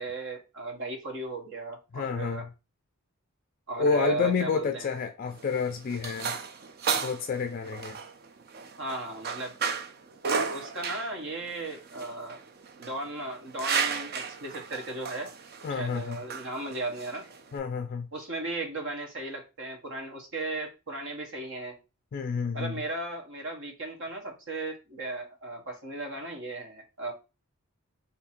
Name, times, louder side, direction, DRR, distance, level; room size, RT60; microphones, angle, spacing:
voice 1, 0.0-2.5 3.7-4.9 8.8-9.6 10.2-12.4 12.8-15.3 15.7-17.3 18.1-21.8 22.5-27.1, right 2 dB, 65° right, 1.0 m, -36 dB
voice 2, 1.9-2.5 3.8-6.3 7.0-8.0 15.6-16.2 17.5-18.1 22.1-22.8, left 5 dB, 40° left, 0.3 m, -29 dB
sound 1, 5.3-17.6, right 6 dB, 50° right, 0.4 m, -34 dB
2.7 x 2.5 x 4.2 m
head